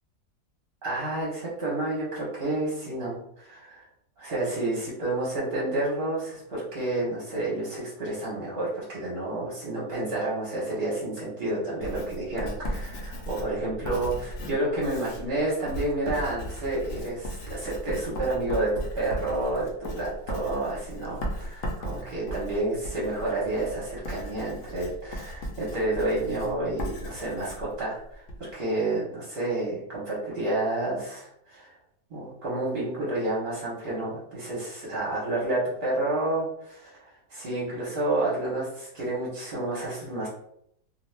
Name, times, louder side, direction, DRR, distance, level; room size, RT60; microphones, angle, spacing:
voice 1, 0.8-3.9 4.2-18.7 18.9-31.7 32.1-37.0 37.3-40.3, right 2 dB, 45° right, -6 dB, 0.8 m, -30 dB
Writing, 11.8-28.4, equal, 65° left, 0.8 m, -37 dB
2.5 x 2.2 x 3.2 m, 0.72 s
omnidirectional pair, 1.6 m